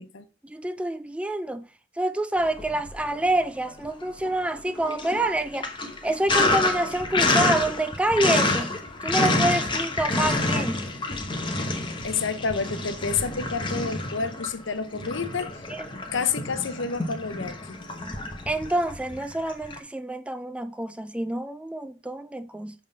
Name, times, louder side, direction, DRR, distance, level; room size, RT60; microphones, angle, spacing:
voice 1, 0.4-1.7 2.0-5.8 6.0-8.7 9.0-10.9 15.7-15.8 18.5-22.7, right 1 dB, 5° right, 0.3 m, -27 dB
Sink (filling or washing), 2.5-3.3 3.7-19.8, left 2 dB, 25° left, 1.0 m, -28 dB
voice 2, 12.0-15.7 16.1-17.8, left 5 dB, 80° left, 0.7 m, -29 dB
7.3 x 3.6 x 5.3 m
head